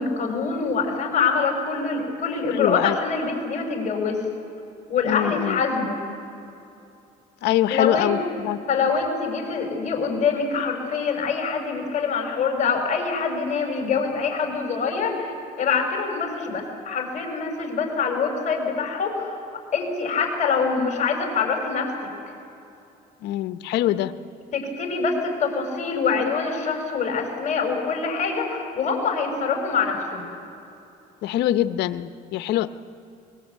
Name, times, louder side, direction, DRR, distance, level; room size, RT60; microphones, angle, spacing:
voice 1, 0.0-4.2 4.9-6.0 7.7-8.2 8.7-15.3 15.6-19.4 19.7-21.9 23.9-24.0 24.5-30.2, left 5 dB, 45° left, 2 dB, 5.8 m, -25 dB
voice 2, 2.5-3.0 5.0-5.6 7.4-8.2 8.4-8.6 23.2-24.1 31.2-32.7, left 13 dB, 85° left, 12 dB, 0.9 m, -23 dB
24.5 x 21.0 x 8.3 m, 2.7 s
cardioid pair, 110°, 17 cm